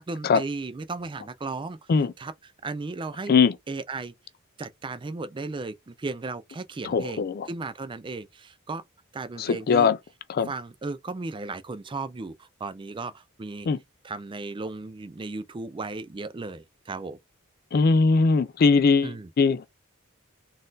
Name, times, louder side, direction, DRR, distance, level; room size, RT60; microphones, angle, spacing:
voice 1, 0.0-1.8 2.2-2.3 2.6-3.3 3.7-4.1 4.6-8.8 9.1-9.9 10.5-13.7 14.0-17.2 19.0-19.3, right 3 dB, 25° right, 0.4 m, -35 dB
voice 2, 6.8-7.5 9.4-10.0 10.3-10.5 13.7-13.8 17.7-19.7, left 4 dB, 45° left, 0.4 m, -21 dB
4.1 x 2.5 x 3.8 m
head